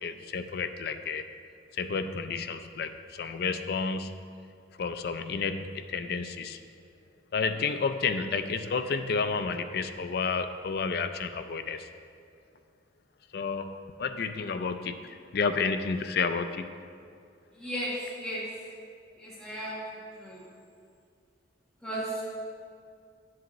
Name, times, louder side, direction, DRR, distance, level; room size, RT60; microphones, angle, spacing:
voice 1, 0.0-1.3 1.7-4.3 4.8-6.6 7.3-11.9 13.3-16.6, left 5 dB, 55° left, 9 dB, 0.4 m, -31 dB
voice 2, 17.5-17.9 18.2-18.4 19.2-19.8 20.2-20.4 21.8-22.3, right 1 dB, 5° left, -9 dB, 1.3 m, -35 dB
10.5 x 7.6 x 3.0 m, 2.3 s
head